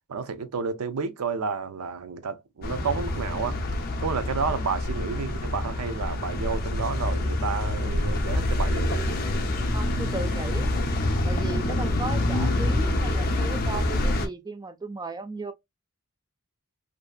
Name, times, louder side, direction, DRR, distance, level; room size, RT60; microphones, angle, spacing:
voice 1, 0.1-3.6 4.0-9.0, right 5 dB, 85° right, 0.5 m, -31 dB
sound 1, 2.6-14.3, left 1 dB, 45° left, 0.5 m, -26 dB
voice 2, 9.7-10.7 11.2-15.5, right 3 dB, 20° right, 0.3 m, -35 dB
2.6 x 2.4 x 2.2 m
head